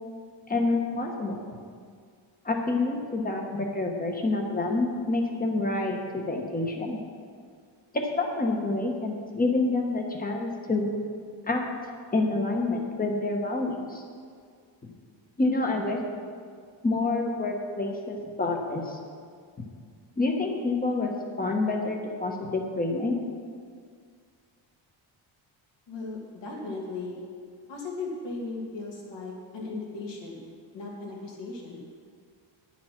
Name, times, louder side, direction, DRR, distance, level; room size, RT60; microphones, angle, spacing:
voice 1, 0.5-1.4 2.4-7.0 7.9-10.9 11.5-11.6 12.1-14.0 15.4-16.0 16.8-19.0 20.2-23.2, left 2 dB, 20° left, 2 dB, 1.2 m, -27 dB
voice 2, 25.9-27.2 27.7-30.4 30.7-31.8, left 3 dB, 65° left, -2 dB, 2.6 m, -37 dB
10.5 x 7.4 x 5.9 m, 2.1 s
cardioid pair, 140°, 47 cm